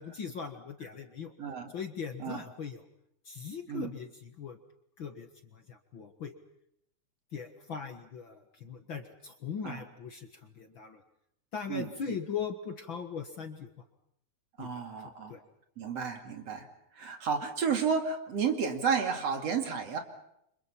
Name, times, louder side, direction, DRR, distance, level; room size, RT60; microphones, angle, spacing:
voice 1, 0.0-1.3 1.7-2.8 3.3-4.6 5.0-6.3 7.3-11.0 11.5-13.7 14.6-14.8 15.3-15.4, left 6 dB, 45° left, 6 dB, 2.0 m, -40 dB
voice 2, 1.4-1.7 2.2-2.4 3.7-4.0 9.6-9.8 11.7-12.2 14.6-15.3 15.8-16.7 16.9-20.0, right 6 dB, 55° right, 5 dB, 3.5 m, -32 dB
30.0 x 26.0 x 5.8 m, 0.75 s
omnidirectional pair, 3.5 m